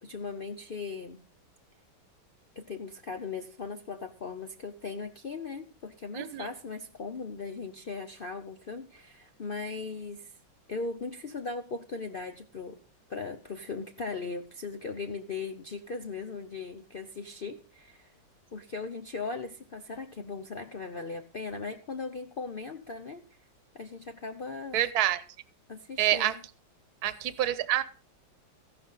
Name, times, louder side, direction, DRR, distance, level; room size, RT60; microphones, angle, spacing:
voice 1, 0.0-1.2 2.6-10.3 10.7-12.8 13.1-18.2 18.5-23.2 23.7-24.8 25.7-26.3, left 4 dB, 90° left, 7 dB, 0.4 m, -38 dB
voice 2, 6.1-6.5 24.7-25.2 26.0-26.4 27.0-27.8, right 13 dB, 60° right, 14 dB, 1.3 m, -27 dB
14.5 x 12.0 x 4.0 m, 0.37 s
omnidirectional pair, 2.1 m